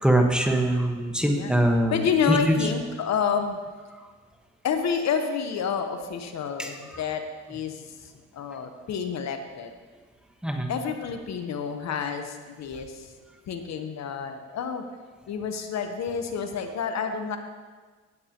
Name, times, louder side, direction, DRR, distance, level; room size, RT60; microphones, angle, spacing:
voice 1, 0.0-2.6 6.6-6.7 10.4-10.7, right 1 dB, 5° right, 1 dB, 1.2 m, -23 dB
voice 2, 1.9-3.6 4.6-9.7 10.7-13.1 13.5-14.8 15.3-17.4, left 6 dB, 65° left, 6 dB, 1.0 m, -29 dB
16.5 x 8.2 x 2.9 m, 1.4 s
cardioid pair, 90°, 30 cm